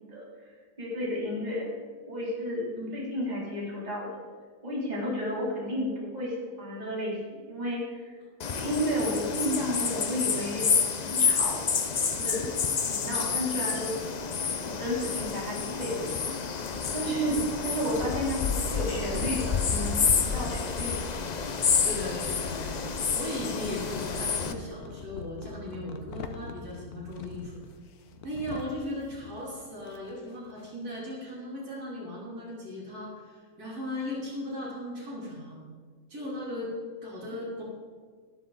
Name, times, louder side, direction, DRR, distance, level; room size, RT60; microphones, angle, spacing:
voice 1, 0.8-1.7 2.1-2.7 2.9-4.2 4.6-8.2 8.5-10.7 11.0-11.6 12.1-12.5 12.9-14.0 14.6-20.9, equal, 25° right, -5 dB, 3.1 m, -32 dB
sound 1, 8.4-24.5, left 6 dB, 50° left, 0.5 m, -29 dB
voice 2, 21.8-27.5 28.2-35.6 36.1-36.7 37.0-37.6, left 1 dB, 85° right, -4 dB, 3.5 m, -37 dB
sound 2, 23.4-31.0, left 5 dB, 80° left, 1.3 m, -45 dB
12.5 x 11.5 x 3.9 m, 1.6 s
omnidirectional pair, 1.6 m